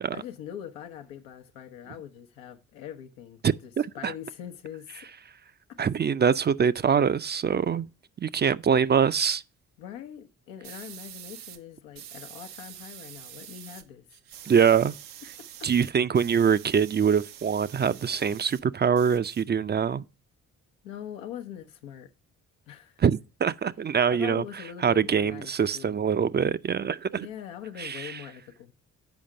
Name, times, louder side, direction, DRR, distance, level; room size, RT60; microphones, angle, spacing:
voice 1, 0.1-5.1 5.7-5.8 9.8-14.0 14.4-14.5 15.4-15.7 20.8-22.1 22.7-23.0 24.1-26.2 27.1-28.7, left 10 dB, 90° left, 0.8 m, -42 dB
voice 2, 3.4-4.1 5.8-7.9 8.2-9.4 14.5-14.9 15.6-20.0 23.0-24.4 24.8-27.3 27.8-28.2, right 7 dB, 30° right, 0.4 m, -24 dB
sound 1, 10.6-11.6 12.0-13.8 14.1-18.6 18.9-19.9, right 11 dB, 85° right, 0.6 m, -46 dB
7.0 x 5.0 x 6.3 m
hypercardioid pair, 45°, 36 cm